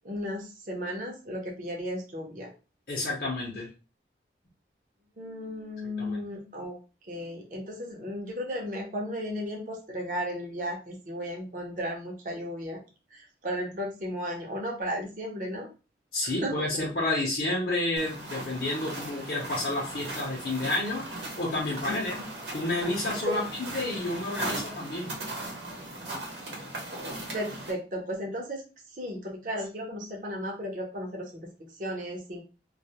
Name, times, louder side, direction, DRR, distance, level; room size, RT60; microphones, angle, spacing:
voice 1, 0.0-2.5 5.2-6.8 7.1-12.8 13.1-15.7 16.2-16.8 21.9-22.2 23.2-23.4 27.3-28.6 28.9-32.4, equal, 45° right, 0 dB, 0.6 m, -35 dB
voice 2, 2.9-3.7 6.0-6.2 16.1-21.0 21.4-22.2 22.5-23.4 23.7-25.1, left 2 dB, 55° left, -5 dB, 0.6 m, -30 dB
sound 1, 18.0-27.7, right 2 dB, 75° right, 0.9 m, -38 dB
2.3 x 2.0 x 2.8 m, 0.33 s
head